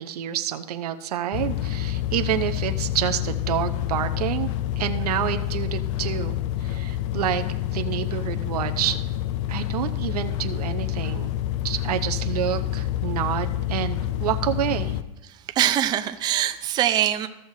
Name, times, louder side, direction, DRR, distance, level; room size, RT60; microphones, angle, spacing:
voice 1, 0.0-4.5 4.8-7.4 7.7-9.0 9.5-11.3 11.6-15.0, right 11 dB, 90° right, 7 dB, 0.7 m, -28 dB
sound 1, 1.3-15.0, left 12 dB, 55° left, 0.5 m, -28 dB
voice 2, 15.3-17.3, right 11 dB, 20° right, 7 dB, 0.4 m, -23 dB
15.0 x 6.5 x 2.7 m, 1.0 s
supercardioid pair, 140°, 19 cm